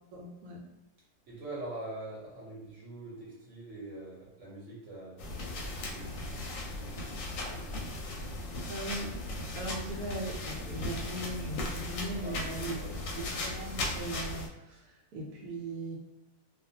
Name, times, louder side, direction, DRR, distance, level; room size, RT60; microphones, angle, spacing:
voice 1, 0.1-0.6 8.7-12.8 13.2-16.0, right 2 dB, 85° right, -1 dB, 1.1 m, -39 dB
voice 2, 1.3-6.9 7.2-7.8 12.2-13.1, right 2 dB, 60° right, -5 dB, 1.0 m, -45 dB
sound 1, 5.2-14.5, left 2 dB, 70° left, 0.9 m, -37 dB
2.5 x 2.2 x 2.7 m, 0.97 s
omnidirectional pair, 1.6 m